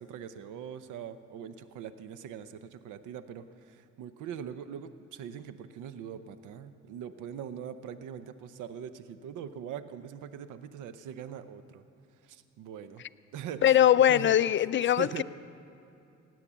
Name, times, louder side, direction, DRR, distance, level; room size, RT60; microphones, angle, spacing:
voice 1, 0.0-11.9 12.2-13.0 13.3-13.8 14.1-14.4 15.0-15.2, right 8 dB, 85° right, 12 dB, 0.7 m, -42 dB
voice 2, 13.6-15.2, left 11 dB, 40° left, 15 dB, 0.4 m, -22 dB
16.5 x 9.4 x 7.3 m, 2.7 s
cardioid pair, 90°, 30 cm